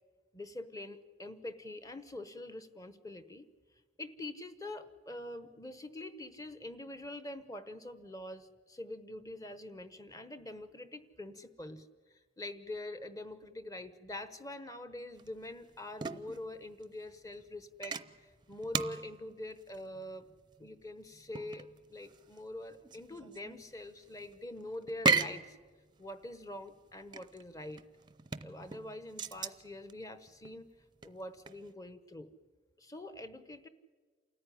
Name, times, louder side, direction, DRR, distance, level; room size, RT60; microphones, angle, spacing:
voice 1, 0.3-3.4 4.0-20.3 20.6-25.6 26.0-27.8 28.4-30.7 31.0-32.3 32.8-33.7, left 1 dB, 20° left, 11 dB, 1.0 m, -45 dB
sound 1, 15.2-31.7, right 4 dB, 25° right, 0.6 m, -38 dB
28.0 x 14.5 x 10.0 m, 1.5 s
head